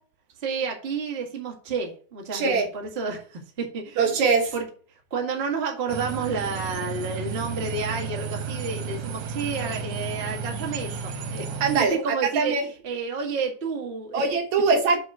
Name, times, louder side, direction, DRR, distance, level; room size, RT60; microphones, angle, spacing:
voice 1, 0.4-4.0 4.5-4.6 5.1-12.6 12.8-14.2, right 5 dB, 30° right, 1.2 m, -30 dB
voice 2, 2.3-2.7 4.0-4.5 11.6-12.7 14.1-15.0, right 4 dB, 70° right, 2.3 m, -22 dB
sound 1, 5.9-11.8, right 5 dB, 85° right, 2.5 m, -33 dB
7.8 x 3.5 x 6.1 m
omnidirectional pair, 3.5 m